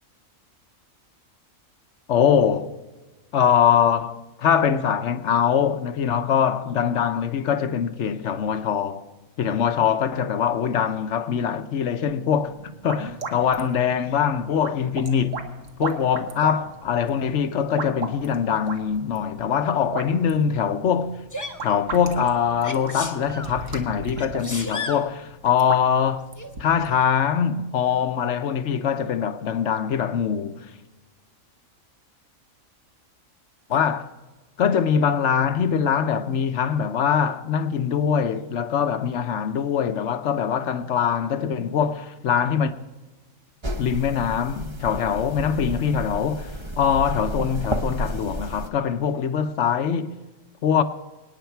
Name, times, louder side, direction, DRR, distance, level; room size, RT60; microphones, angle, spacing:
voice 1, 2.1-2.7 3.3-9.1 9.4-15.5 15.8-21.2 21.6-30.7 33.7-34.1 34.6-42.7 43.8-50.2 50.6-50.8, left 7 dB, 65° left, 1.0 m, -23 dB
sound 1, 12.4-27.0, right 4 dB, 65° right, 1.6 m, -37 dB
Sneeze, 21.3-21.6 22.6-23.5 24.2-25.1 26.4-26.5, left 2 dB, 15° left, 0.8 m, -33 dB
sound 2, 43.6-48.7, right 1 dB, 25° right, 0.8 m, -32 dB
25.0 x 9.3 x 4.6 m
omnidirectional pair, 1.4 m